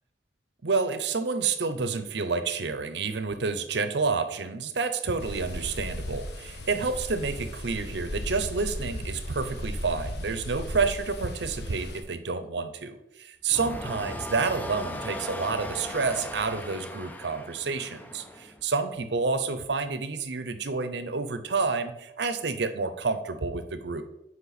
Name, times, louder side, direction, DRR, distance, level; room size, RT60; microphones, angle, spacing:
voice 1, 0.6-24.0, right 4 dB, 70° right, 10 dB, 0.7 m, -29 dB
sound 1, 5.2-12.0, left 1 dB, 65° left, 0.9 m, -36 dB
sound 2, 13.5-18.7, left 1 dB, 10° left, 0.5 m, -38 dB
8.3 x 4.7 x 4.1 m, 0.87 s
head